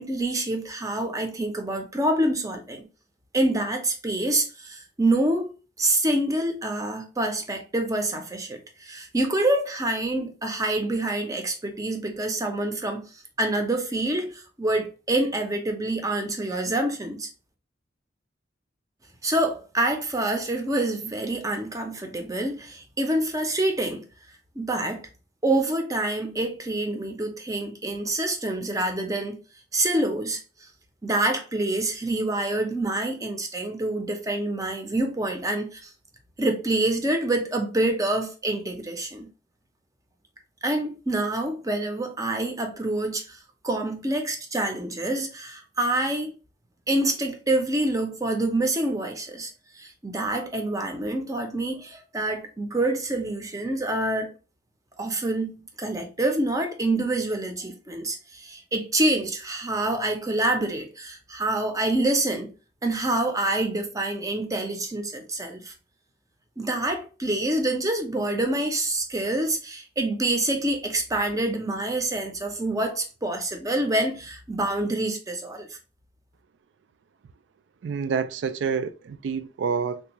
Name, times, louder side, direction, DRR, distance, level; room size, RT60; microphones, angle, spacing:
voice 1, 0.0-2.9 3.3-5.5 5.8-13.1 13.4-17.3 19.2-24.1 24.6-25.0 25.4-29.4 29.7-30.4 31.0-35.9 36.4-39.3 40.6-43.4 43.6-46.4 46.9-49.5 49.8-54.3 55.0-62.5 62.8-65.7 66.6-75.7, right 1 dB, 20° right, 0.6 m, -26 dB
voice 2, 77.8-80.0, right 6 dB, 75° right, 0.3 m, -28 dB
3.4 x 2.4 x 2.9 m
head